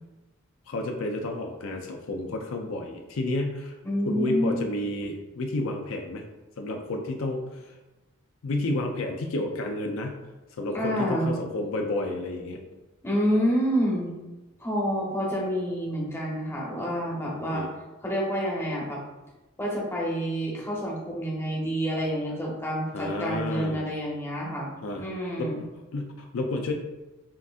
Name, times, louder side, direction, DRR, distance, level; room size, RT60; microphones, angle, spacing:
voice 1, 0.7-3.7 4.1-6.2 6.6-7.7 8.4-10.2 10.5-12.6 17.3-17.7 22.9-23.8 24.8-25.0 25.4-26.7, left 2 dB, 75° left, 3 dB, 0.5 m, -31 dB
voice 2, 3.8-4.6 5.0-5.1 10.7-11.3 13.0-14.1 14.6-17.6 18.0-19.0 19.6-24.7 25.0-25.6, equal, 10° left, -4 dB, 0.9 m, -28 dB
5.6 x 2.7 x 2.4 m, 1.1 s
head